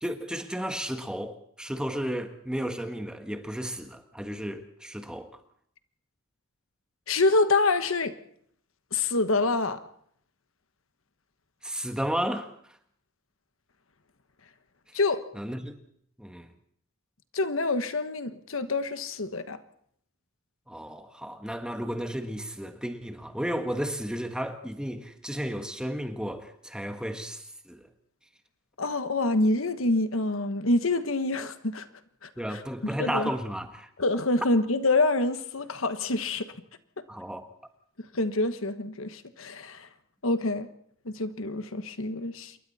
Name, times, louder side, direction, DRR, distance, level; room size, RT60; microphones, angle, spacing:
voice 1, 0.0-5.3 11.6-12.5 15.3-15.8 16.2-16.5 20.7-27.9 32.4-33.9 37.1-37.5, equal, 5° right, 1.4 m, -33 dB
voice 2, 7.1-8.1 8.9-9.8 14.9-15.2 17.3-19.6 28.8-31.9 32.2-32.6 33.0-33.3 34.0-36.5 38.1-39.9 40.2-40.7 41.0-42.5, left 2 dB, 75° left, 1.3 m, -26 dB
27.5 x 22.5 x 4.2 m
head